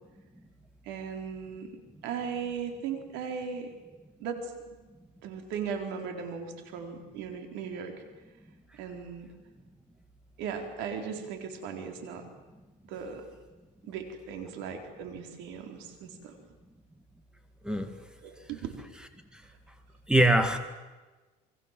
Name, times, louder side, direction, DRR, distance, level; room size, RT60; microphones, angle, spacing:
voice 1, 0.8-3.7 4.2-4.6 5.2-7.9 8.7-9.3 10.4-12.2 12.8-13.2 13.8-16.3 18.2-18.7, right 6 dB, 75° right, 5 dB, 4.3 m, -37 dB
voice 2, 20.1-20.6, right 1 dB, 5° right, 8 dB, 2.0 m, -23 dB
28.5 x 23.0 x 7.7 m, 1.2 s
cardioid pair, 135°, 19 cm